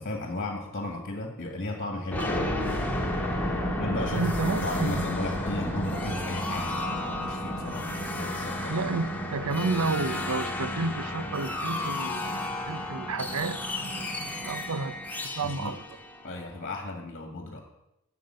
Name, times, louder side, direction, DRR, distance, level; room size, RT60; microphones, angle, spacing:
voice 1, 0.0-2.5 3.8-7.9 8.2-8.9 15.4-15.8 16.2-17.6, left 1 dB, 45° left, 3 dB, 2.1 m, -35 dB
sound 1, 2.1-16.8, left 1 dB, 10° left, 1.9 m, -32 dB
voice 2, 4.1-5.1 8.7-15.0 15.4-15.8, right 3 dB, 85° right, 14 dB, 0.8 m, -31 dB
13.5 x 7.2 x 8.9 m, 0.87 s
head